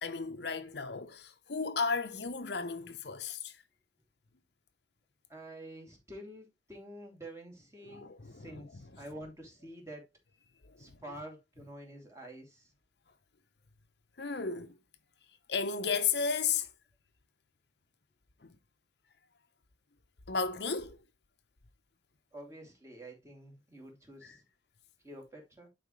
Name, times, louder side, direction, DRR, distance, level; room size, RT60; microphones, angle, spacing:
voice 1, 0.0-3.6 7.8-8.9 10.6-10.9 14.2-14.8 15.5-16.7 18.4-18.6 20.3-21.0 24.2-24.4, left 5 dB, 65° left, 0.8 m, -34 dB
voice 2, 5.3-10.1 10.8-12.7 22.3-24.4 25.0-25.7, right 1 dB, 15° right, 2.6 m, -48 dB
10.5 x 4.4 x 3.1 m
head